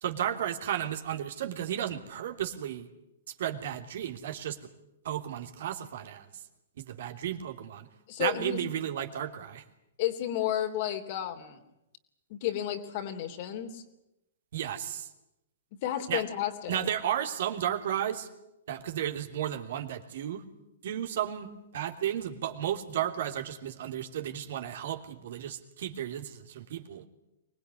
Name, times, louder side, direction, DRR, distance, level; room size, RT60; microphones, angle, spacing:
voice 1, 0.0-2.9 3.3-4.6 5.0-6.3 6.8-7.9 8.2-9.6 14.5-15.1 16.1-16.2 16.7-18.3 18.7-20.4 20.8-27.0, right 10 dB, 65° right, 5 dB, 3.1 m, -33 dB
voice 2, 8.1-8.6 10.0-11.6 12.3-13.8 15.8-16.9, left 11 dB, 50° left, 6 dB, 3.4 m, -32 dB
24.5 x 20.0 x 9.8 m, 0.88 s
hypercardioid pair, 125°, 0 cm